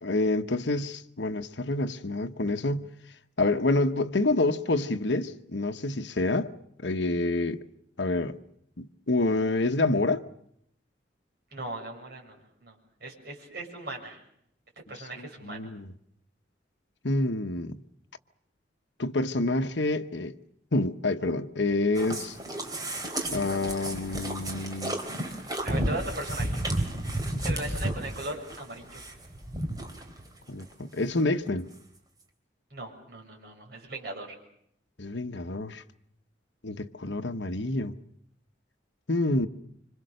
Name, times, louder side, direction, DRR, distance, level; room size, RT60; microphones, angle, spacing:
voice 1, 0.0-2.9 3.4-6.5 6.8-7.7 8.0-8.4 8.8-10.2 15.2-15.9 17.0-17.8 19.0-20.4 20.7-22.4 23.3-25.0 30.5-31.7 35.0-35.8 36.6-37.9 39.1-39.5, left 2 dB, 70° left, 1.1 m, -27 dB
voice 2, 11.5-14.2 14.9-15.7 25.6-26.6 27.2-29.0 32.7-34.4, right 2 dB, 55° right, 6.9 m, -38 dB
sound 1, 21.9-30.3 30.6-30.7 31.2-31.3 31.5-31.6, right 1 dB, 20° right, 3.2 m, -32 dB
26.5 x 26.0 x 6.6 m
head